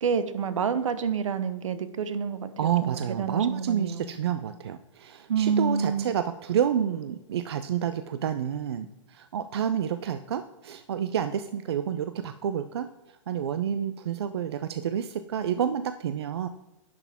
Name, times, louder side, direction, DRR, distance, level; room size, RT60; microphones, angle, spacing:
voice 1, 0.0-4.1 5.3-6.1, right 6 dB, 75° right, 12 dB, 0.9 m, -28 dB
voice 2, 2.6-12.9 13.3-16.5, right 9 dB, 55° right, 10 dB, 0.4 m, -29 dB
10.5 x 6.0 x 3.5 m, 1.0 s
hypercardioid pair, 170°, 17 cm